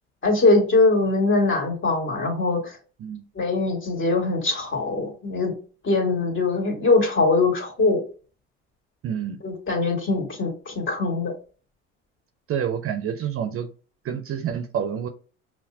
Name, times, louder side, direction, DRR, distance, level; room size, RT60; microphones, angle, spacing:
voice 1, 0.2-2.6 3.4-5.5 5.8-8.0 9.4-11.3, left 3 dB, 35° left, 1 dB, 2.0 m, -22 dB
voice 2, 9.0-9.4 12.5-13.7 14.0-15.1, right 8 dB, 40° right, 7 dB, 0.7 m, -28 dB
5.7 x 2.2 x 2.7 m, 0.37 s
hypercardioid pair, 70°, 35 cm